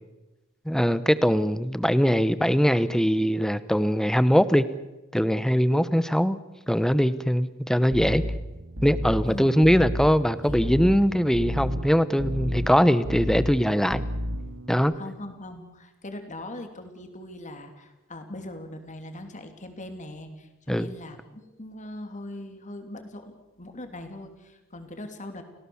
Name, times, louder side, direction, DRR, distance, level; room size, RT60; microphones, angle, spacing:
voice 1, 0.7-4.6 5.1-6.4 6.7-8.2 8.8-14.0 14.7-14.9 20.7-20.9, equal, ahead, 15 dB, 0.9 m, -21 dB
sound 1, 7.9-14.8, equal, 80° right, 2.3 m, -32 dB
voice 2, 9.2-9.8 10.1-10.6 14.9-25.4, left 1 dB, 35° left, 6 dB, 3.1 m, -41 dB
30.0 x 17.0 x 7.2 m, 1.0 s
head